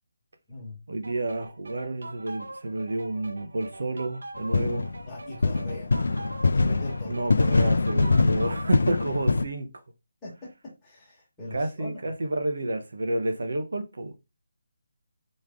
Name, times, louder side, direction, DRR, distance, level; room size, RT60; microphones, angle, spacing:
voice 1, 0.9-4.9 7.1-9.7 11.5-14.2, right 2 dB, 65° right, 1.1 m, -30 dB
sound 1, 1.0-8.8, right 2 dB, 85° right, 0.9 m, -43 dB
sound 2, 4.5-5.0 5.4-9.4, left 3 dB, 65° left, 0.4 m, -23 dB
voice 2, 5.0-6.0 6.5-7.7 10.2-10.3 10.8-12.1, left 1 dB, 5° left, 1.5 m, -41 dB
4.3 x 3.3 x 3.6 m
hypercardioid pair, 180°, 0 cm